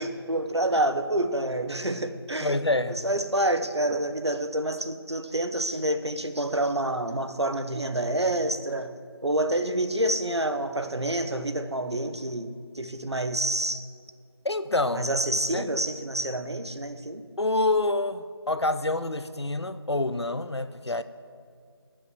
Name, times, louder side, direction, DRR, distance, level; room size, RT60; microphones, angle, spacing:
voice 1, 0.0-2.6 3.0-8.9 9.2-13.9 14.9-17.3, right 1 dB, 85° right, 9 dB, 1.2 m, -28 dB
voice 2, 2.4-3.0 14.4-15.1 15.5-15.6 17.4-21.0, left 2 dB, 85° left, 12 dB, 0.8 m, -27 dB
15.5 x 6.8 x 7.3 m, 2.2 s
figure-of-eight pair, 160°, 14 cm